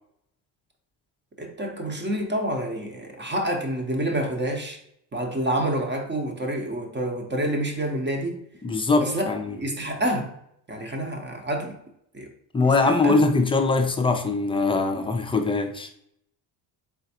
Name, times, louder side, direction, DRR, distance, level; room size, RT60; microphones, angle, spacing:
voice 1, 1.4-4.8 5.1-8.4 9.0-9.3 9.5-10.3 10.7-11.7 12.1-12.3 13.0-13.2, right 1 dB, 20° right, 0.8 m, -28 dB
voice 2, 8.6-9.6 12.5-15.9, left 3 dB, 10° left, 0.5 m, -22 dB
3.7 x 3.5 x 2.8 m
supercardioid pair, 75°, 50 cm